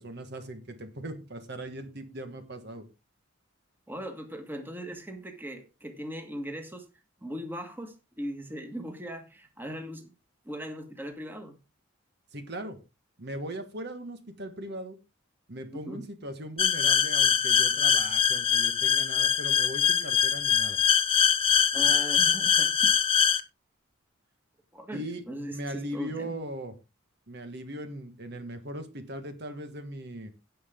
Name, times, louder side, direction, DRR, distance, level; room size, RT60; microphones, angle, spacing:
voice 1, 0.0-2.8 12.3-12.8 13.2-15.0 15.5-20.8 24.9-25.2 25.5-26.7 27.3-30.3, right 1 dB, 55° right, 1.5 m, -39 dB
voice 2, 3.9-6.9 7.2-10.1 10.4-11.5 15.7-16.0 21.7-23.0 24.7-26.4, equal, 10° right, 1.7 m, -39 dB
sound 1, 16.6-23.4, left 8 dB, 30° left, 0.8 m, -23 dB
17.0 x 5.7 x 3.7 m
head